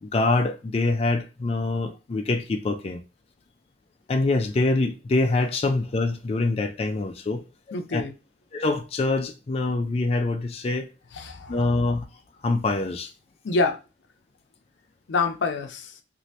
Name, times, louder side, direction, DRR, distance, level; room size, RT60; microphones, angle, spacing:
voice 1, 0.0-3.0 4.1-7.4 7.7-8.0 8.5-10.9 11.5-12.1 12.4-13.1, left 2 dB, 35° left, 0.3 m, -25 dB
voice 2, 7.7-8.1 11.1-11.6 13.4-13.8 15.1-16.0, left 3 dB, 85° left, 0.5 m, -26 dB
3.1 x 2.6 x 2.7 m
head